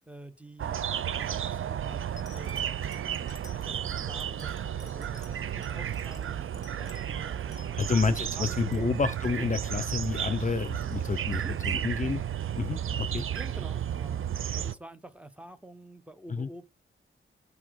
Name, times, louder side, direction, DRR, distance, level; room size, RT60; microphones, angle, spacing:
voice 1, 0.1-0.8 1.2-2.9 3.5-7.6 8.0-8.9 11.4-11.5 12.0-12.1 13.3-14.2 14.5-16.6, right 1 dB, 5° right, 1.1 m, -48 dB
sound 1, 0.6-14.7, right 9 dB, 80° right, 0.6 m, -33 dB
sound 2, 1.6-1.7 2.2-8.3 8.6-9.3 9.6-9.8 10.0-10.2 10.6-12.3 12.9-13.5 14.4-14.5, left 4 dB, 20° left, 2.1 m, -54 dB
voice 2, 7.8-12.2 12.6-13.2 16.3-16.5, left 4 dB, 40° left, 0.7 m, -29 dB
8.4 x 4.9 x 4.8 m
wide cardioid pair, 140°, 21 cm